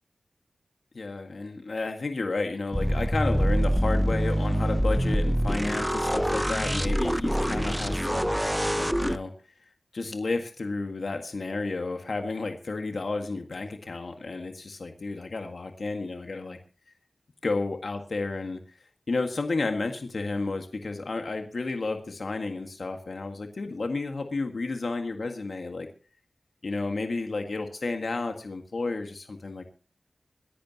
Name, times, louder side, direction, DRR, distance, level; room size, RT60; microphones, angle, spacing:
voice 1, 0.9-8.4 8.7-9.3 9.9-16.6 17.4-25.9 26.6-29.6, left 3 dB, 65° left, 5 dB, 1.7 m, -32 dB
sound 1, 2.7-9.2, equal, 5° right, 0.7 m, -25 dB
26.0 x 11.0 x 2.9 m, 0.37 s
wide cardioid pair, 65°, 0 cm